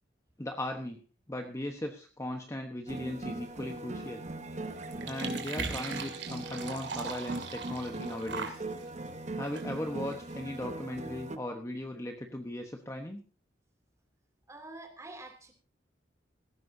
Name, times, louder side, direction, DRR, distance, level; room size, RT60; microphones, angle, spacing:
voice 1, 0.4-1.0 1.3-4.2 5.1-8.6 9.3-13.2, left 1 dB, 15° left, 4 dB, 1.1 m, -38 dB
sound 1, 2.9-11.4, right 2 dB, 40° right, 1.1 m, -40 dB
sound 2, 3.4-10.6, right 5 dB, 70° right, 2.7 m, -42 dB
voice 2, 14.5-15.5, right 1 dB, 15° right, 5 dB, 2.9 m, -43 dB
18.0 x 15.5 x 2.8 m, 0.35 s
head